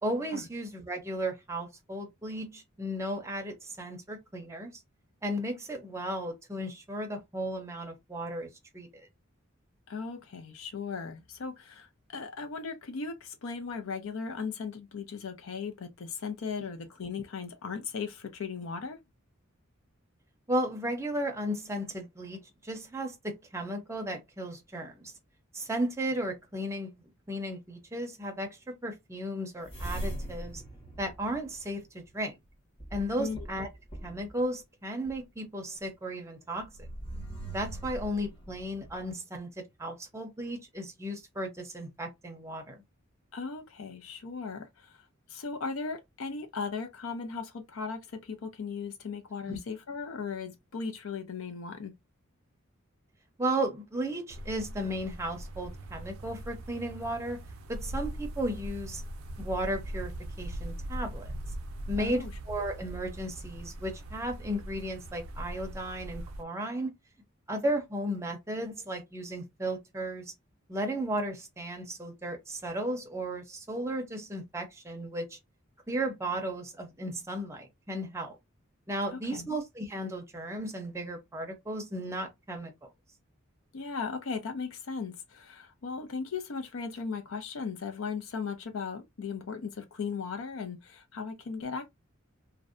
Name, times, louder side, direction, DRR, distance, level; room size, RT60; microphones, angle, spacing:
voice 1, 0.0-4.8 5.2-9.1 20.5-25.1 25.5-26.9 27.3-30.6 31.0-32.4 32.9-33.7 34.0-36.7 37.5-42.8 49.5-49.6 53.4-57.4 57.7-59.0 59.4-60.1 60.4-61.3 61.9-66.9 67.5-70.3 70.7-75.4 75.9-78.4 78.9-82.9, right 1 dB, 15° right, 0.6 m, -35 dB
voice 2, 9.9-19.0 33.2-33.5 43.3-51.9 62.0-62.3 79.1-79.5 83.7-91.9, left 5 dB, 70° left, 0.5 m, -37 dB
sound 1, 29.6-32.1 32.8-34.4 35.1-35.2 36.6-39.1, right 1 dB, 25° left, 1.2 m, -41 dB
sound 2, 54.3-66.4, right 1 dB, 80° right, 0.5 m, -40 dB
2.5 x 2.1 x 2.4 m
head